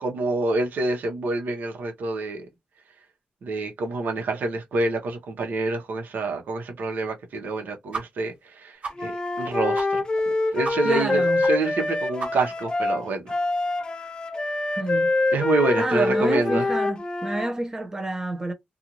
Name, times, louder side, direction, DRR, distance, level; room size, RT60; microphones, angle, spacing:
voice 1, 0.0-2.5 3.4-9.1 9.4-13.3 15.3-16.7, right 3 dB, 70° right, 1.0 m, -27 dB
sound 1, 7.9-8.0 8.3-8.4 8.8-9.0 9.3-9.4 9.7-9.9 10.2-10.3 10.6-10.7 11.0-11.1 11.4-11.5 11.8-11.9 12.2-12.6, right 4 dB, 50° right, 1.3 m, -33 dB
Wind instrument woodwind instrument, 9.0-17.5, left 2 dB, 25° left, 0.5 m, -25 dB
voice 2, 10.8-11.4 14.8-15.1 15.8-18.5, right 2 dB, 20° right, 0.8 m, -29 dB
2.5 x 2.5 x 3.0 m
wide cardioid pair, 160°, 3 cm